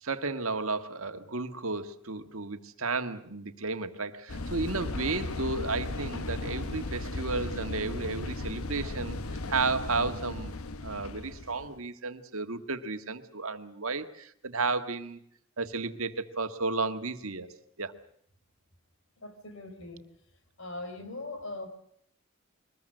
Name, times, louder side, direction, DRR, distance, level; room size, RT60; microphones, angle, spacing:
voice 1, 0.0-9.2 9.5-10.6 10.8-15.2 15.6-17.5 17.8-17.9, right 3 dB, 70° right, 8 dB, 1.6 m, -33 dB
sound 1, 4.3-11.8, left 2 dB, 80° left, 1.2 m, -36 dB
voice 2, 19.2-20.0 20.6-21.7, left 2 dB, 60° left, 9 dB, 4.3 m, -40 dB
23.5 x 20.5 x 7.7 m, 0.68 s
head